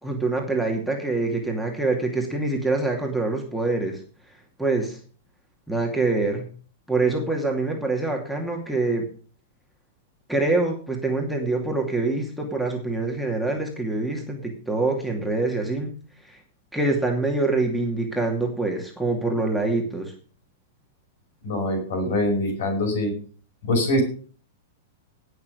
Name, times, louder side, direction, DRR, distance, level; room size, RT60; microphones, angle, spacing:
voice 1, 0.0-4.0 4.6-5.0 5.7-6.5 6.9-9.1 10.3-16.0 16.2-16.4 16.7-20.1, right 3 dB, ahead, 2 dB, 2.5 m, -25 dB
voice 2, 21.4-23.1 23.6-24.0, left 1 dB, 60° left, 4 dB, 5.8 m, -23 dB
18.5 x 6.6 x 5.2 m, 0.41 s
figure-of-eight pair, 105°, 0 cm